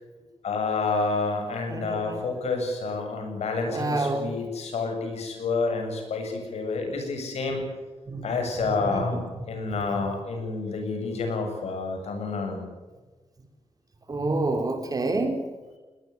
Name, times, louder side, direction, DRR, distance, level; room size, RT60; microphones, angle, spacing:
voice 1, 0.4-7.6 8.2-12.6, left 4 dB, 80° left, 4 dB, 7.9 m, -29 dB
voice 2, 1.7-2.2 3.7-4.3 8.1-8.3 8.8-9.2 14.1-15.4, right 2 dB, 35° right, 5 dB, 4.2 m, -28 dB
20.5 x 19.5 x 10.0 m, 1.3 s
wide cardioid pair, 115°, 11 cm